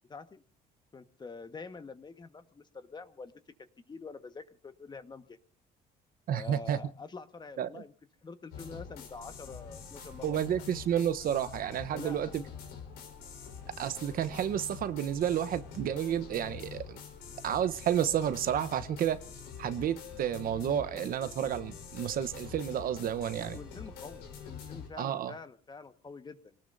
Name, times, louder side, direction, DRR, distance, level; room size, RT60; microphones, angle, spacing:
voice 1, 0.1-0.4 0.9-3.3 3.9-5.4 6.3-7.9 8.2-10.4 11.9-12.3 23.4-26.6, left 4 dB, 25° left, 1.5 m, -46 dB
voice 2, 6.3-6.8 7.6-7.8 10.2-12.4 13.8-17.0 17.4-19.2 19.6-23.6 25.0-25.3, right 10 dB, 60° right, 1.0 m, -31 dB
sound 1, 8.5-24.9, left 7 dB, 85° left, 4.7 m, -46 dB
27.5 x 19.0 x 2.7 m
cardioid pair, 110°, 17 cm